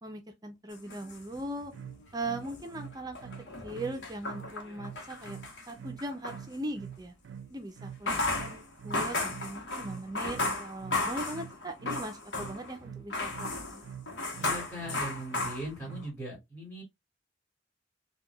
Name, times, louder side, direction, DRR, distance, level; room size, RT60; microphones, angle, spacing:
voice 1, 0.0-1.7 2.1-3.2 3.6-5.4 5.7-7.1 7.5-13.8, right 1 dB, 20° right, 0.5 m, -39 dB
sound 1, 0.7-1.9 2.3-6.4 7.9-12.8 13.1-16.1, left 2 dB, 75° left, 1.1 m, -35 dB
sound 2, 1.7-16.2, right 8 dB, 80° right, 0.3 m, -46 dB
voice 2, 14.4-16.8, right 1 dB, 15° left, 2.6 m, -39 dB
4.6 x 2.3 x 2.3 m
head